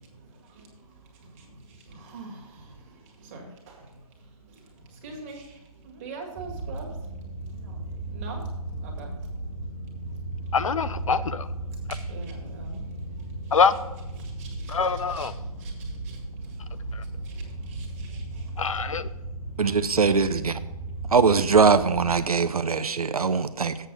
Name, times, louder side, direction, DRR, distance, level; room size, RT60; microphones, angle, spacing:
voice 1, 2.0-2.4 3.3-3.5 5.0-5.4 5.9-6.8 8.1-8.4 8.8-9.1 11.9-12.8 14.4-14.5 15.1-15.3 17.8-18.2, right 4 dB, 25° right, 1 dB, 1.7 m, -41 dB
sound 1, 6.4-22.2, right 2 dB, 5° right, 0.4 m, -36 dB
voice 2, 10.5-11.5 13.5-13.7 14.7-15.3 17.0-17.1 18.6-19.1, left 5 dB, 60° left, 14 dB, 0.5 m, -24 dB
voice 3, 19.6-20.6 21.1-23.8, right 5 dB, 75° right, 11 dB, 0.7 m, -21 dB
7.7 x 6.5 x 5.3 m, 1.0 s
figure-of-eight pair, 155°, 19 cm